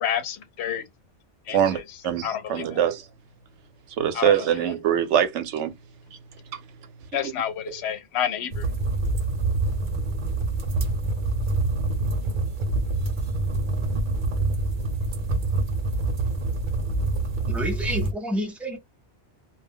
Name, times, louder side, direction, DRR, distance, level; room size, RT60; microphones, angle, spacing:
voice 1, 0.0-0.8 1.5-1.8 2.2-2.8 4.1-4.6 7.1-8.7, left 9 dB, 70° left, 0.8 m, -29 dB
voice 2, 1.5-3.1 4.0-5.7 6.1-6.2 6.5-6.6, right 9 dB, 80° right, 0.9 m, -23 dB
sound 1, 8.5-18.1, right 2 dB, 50° right, 0.8 m, -26 dB
voice 3, 17.5-18.8, equal, ahead, 0.3 m, -29 dB
2.2 x 2.0 x 3.5 m
omnidirectional pair, 1.2 m